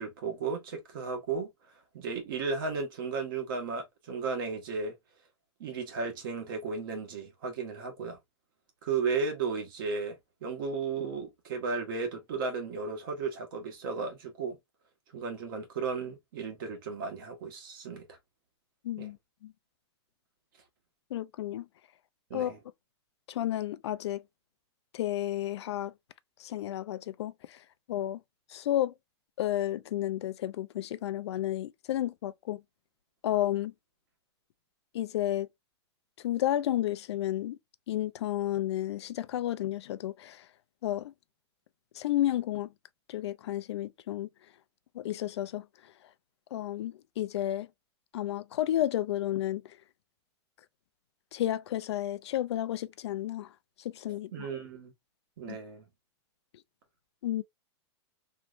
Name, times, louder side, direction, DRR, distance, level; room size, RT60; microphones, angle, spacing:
voice 1, 0.0-1.5 1.9-4.9 5.6-8.2 8.8-14.6 15.1-18.2 19.0-19.1 22.3-22.6 54.3-54.9 55.4-55.8, right 4 dB, 50° right, 1.3 m, -34 dB
voice 2, 18.8-19.2 19.4-19.5 21.1-21.7 22.3-22.5 23.3-24.2 24.9-25.9 26.4-27.6 27.9-28.2 28.5-28.9 29.4-32.6 33.2-33.7 34.9-35.5 36.2-37.6 37.9-40.5 40.8-41.1 42.0-42.7 43.1-44.3 44.9-45.6 46.5-47.7 48.1-49.8 51.3-53.5 53.8-54.5 55.5-55.6 57.2-57.4, left 13 dB, 70° left, 0.4 m, -32 dB
3.1 x 3.1 x 2.5 m
supercardioid pair, 170°, 14 cm